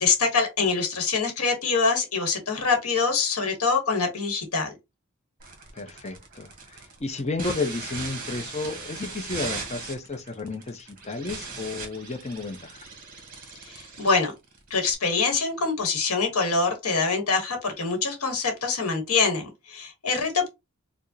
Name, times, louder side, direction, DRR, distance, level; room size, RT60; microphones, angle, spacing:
voice 1, 0.0-4.7 13.7-14.3 14.7-20.5, left 4 dB, 90° left, 1.1 m, -25 dB
sound 1, 5.4-14.9, right 4 dB, 40° right, 1.1 m, -39 dB
voice 2, 5.7-12.9, left 3 dB, 30° left, 0.6 m, -32 dB
4.7 x 2.1 x 2.7 m
head